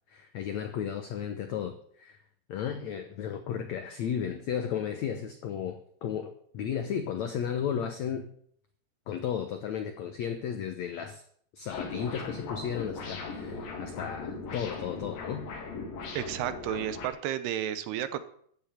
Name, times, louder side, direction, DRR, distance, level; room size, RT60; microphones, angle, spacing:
voice 1, 0.1-2.2 2.5-8.3 9.1-11.2 11.5-15.5, left 8 dB, 85° left, 8 dB, 1.5 m, -34 dB
sound 1, 11.7-17.1, left 4 dB, 60° left, 4.2 m, -39 dB
voice 2, 16.1-18.2, right 10 dB, 80° right, 12 dB, 3.1 m, -32 dB
14.5 x 7.1 x 9.2 m, 0.63 s
omnidirectional pair, 4.6 m